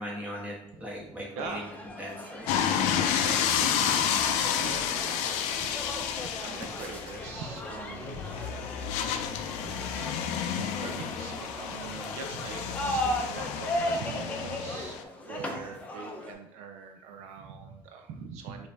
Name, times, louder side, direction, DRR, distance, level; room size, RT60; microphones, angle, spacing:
voice 1, 0.0-2.4 8.0-8.2 10.5-10.7 15.5-15.6, equal, 15° right, -2 dB, 1.1 m, -40 dB
sound 1, 1.4-16.3, left 1 dB, 10° left, 0.6 m, -37 dB
sound 2, 2.5-15.0, left 8 dB, 90° left, 0.4 m, -30 dB
voice 2, 2.6-8.4 8.8-9.9 10.4-18.7, right 5 dB, 75° right, 5 dB, 0.5 m, -43 dB
5.0 x 2.7 x 3.4 m, 0.77 s
cardioid pair, 155°, 12 cm